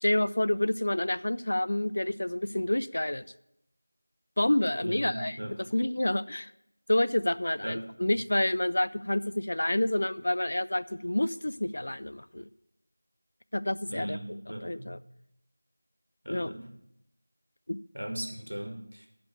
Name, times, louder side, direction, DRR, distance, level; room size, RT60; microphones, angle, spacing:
voice 1, 0.0-3.2 4.4-5.4 5.7-6.5 6.9-12.5 13.5-15.0 16.3-16.5 17.7-17.8, left 1 dB, 55° left, 16 dB, 0.4 m, -28 dB
voice 2, 4.8-5.5 7.6-7.8 13.9-14.9 16.3-16.7 17.9-19.1, right 1 dB, 90° right, 3 dB, 1.9 m, -38 dB
9.3 x 5.1 x 6.8 m, 0.79 s
figure-of-eight pair, 175°, 0 cm